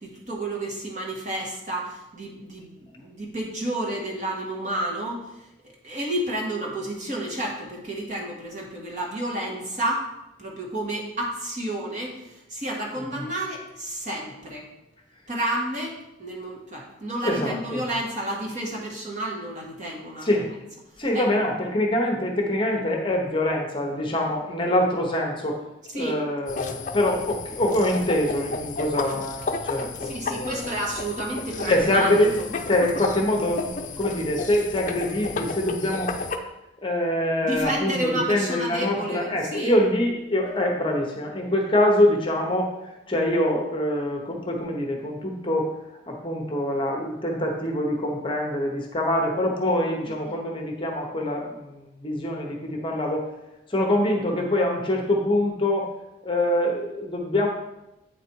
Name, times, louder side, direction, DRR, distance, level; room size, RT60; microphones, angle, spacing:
voice 1, 0.0-10.1 10.4-14.7 15.3-20.4 21.1-21.4 25.9-26.2 30.0-32.1 32.4-32.5 37.4-39.7 50.0-50.3, right 1 dB, 40° right, -2 dB, 1.5 m, -31 dB
voice 2, 17.2-17.8 20.2-20.5 21.0-25.6 25.9-30.6 31.7-32.3 32.7-36.1 36.8-42.7 43.1-45.7 46.1-53.3 53.7-55.9 56.2-57.5, left 1 dB, 25° left, 1 dB, 0.9 m, -24 dB
sound 1, 26.5-36.4, left 4 dB, 40° left, 0.5 m, -32 dB
8.3 x 4.1 x 4.6 m, 0.93 s
head